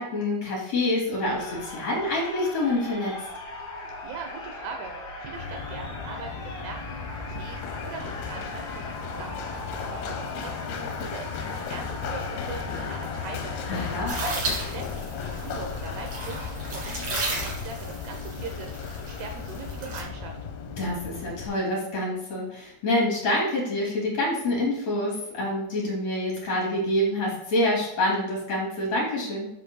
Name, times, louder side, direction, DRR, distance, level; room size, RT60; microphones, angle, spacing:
voice 1, 0.0-3.1 13.7-14.1 20.8-29.5, left 1 dB, 40° left, -3 dB, 3.2 m, -27 dB
sound 1, 1.2-14.1, left 2 dB, 60° left, 1.3 m, -39 dB
voice 2, 4.0-13.7 14.1-16.4 16.7-18.7 19.0-20.4, right 4 dB, 75° right, 3 dB, 2.6 m, -40 dB
Run, 5.3-21.5, left 6 dB, 75° left, 2.5 m, -35 dB
sound 2, 14.1-20.0, right 2 dB, 40° right, 2.0 m, -34 dB
10.5 x 7.5 x 2.3 m, 0.90 s
omnidirectional pair, 5.3 m